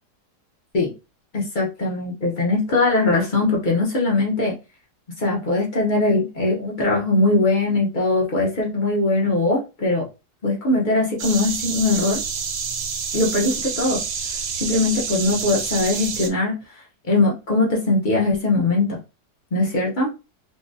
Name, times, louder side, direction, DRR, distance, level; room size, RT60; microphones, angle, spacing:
voice 1, 1.3-4.6 5.2-10.0 10.4-12.2 13.1-14.0 14.6-16.6 17.1-19.0 19.5-20.1, left 2 dB, 50° left, -3 dB, 0.5 m, -21 dB
sound 1, 11.2-16.3, right 6 dB, 75° right, 1.2 m, -28 dB
3.8 x 2.1 x 2.6 m, 0.29 s
omnidirectional pair, 1.9 m